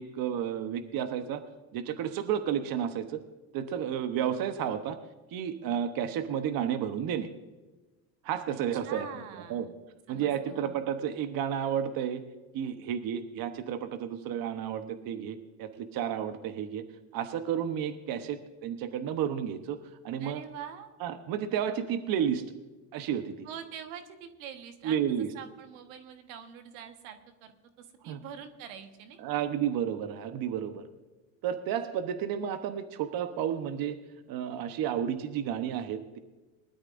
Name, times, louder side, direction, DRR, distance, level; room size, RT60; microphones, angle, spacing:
voice 1, 0.0-1.4 1.7-3.2 3.5-5.0 5.3-7.3 8.2-9.2 9.5-9.7 10.1-12.2 12.5-16.8 17.1-20.4 21.0-22.4 22.9-23.5 24.8-25.3 28.0-28.2 29.2-30.9 31.4-34.0 34.3-36.2, right 9 dB, 60° right, 8 dB, 1.1 m, -32 dB
voice 2, 8.8-9.7 10.1-10.9 20.2-20.9 23.4-29.5, right 8 dB, 90° right, 7 dB, 1.5 m, -45 dB
20.5 x 12.5 x 2.6 m, 1.2 s
supercardioid pair, 95°, 40 cm